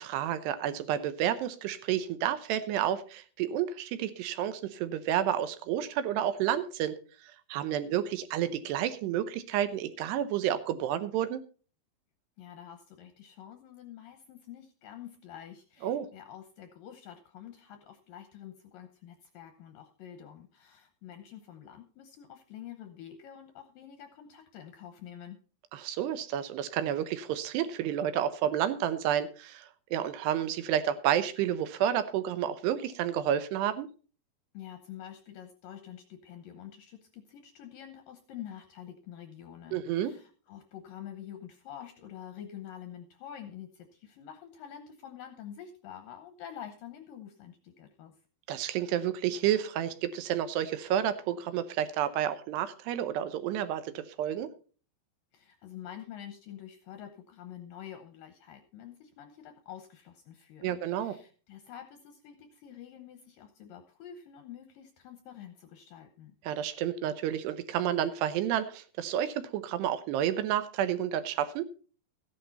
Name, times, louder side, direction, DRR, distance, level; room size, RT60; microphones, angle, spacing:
voice 1, 0.0-6.9 7.5-11.4 15.8-16.1 25.7-33.9 39.7-40.1 48.5-54.5 60.6-61.2 66.4-71.7, right 10 dB, 80° right, 12 dB, 2.8 m, -30 dB
voice 2, 12.4-25.4 34.5-48.1 55.3-66.4, left 10 dB, 75° left, 8 dB, 2.1 m, -47 dB
14.5 x 10.5 x 4.0 m, 0.38 s
omnidirectional pair, 5.0 m